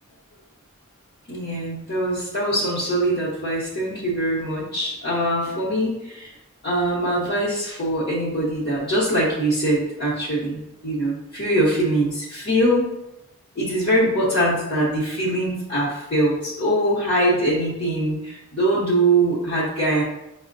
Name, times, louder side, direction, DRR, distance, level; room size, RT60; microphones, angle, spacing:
voice 1, 1.3-6.3 6.6-12.9 13.6-20.0, right 1 dB, 50° left, -9 dB, 0.9 m, -22 dB
6.0 x 2.1 x 2.6 m, 0.88 s
head